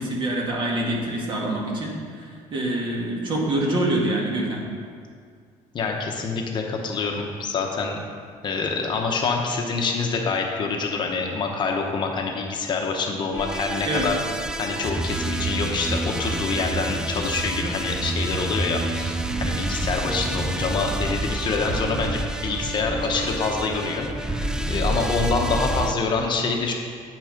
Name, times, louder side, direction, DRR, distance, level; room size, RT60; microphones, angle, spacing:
voice 1, 0.0-2.2 2.5-4.6 13.8-14.1, right 1 dB, 40° right, -2 dB, 1.8 m, -25 dB
voice 2, 5.7-8.0 8.4-14.2 14.6-26.7, left 4 dB, 35° left, 1 dB, 0.9 m, -26 dB
sound 1, 13.3-25.9, right 2 dB, 5° right, 0.3 m, -28 dB
9.0 x 6.1 x 5.2 m, 2.1 s
cardioid pair, 140°, 13 cm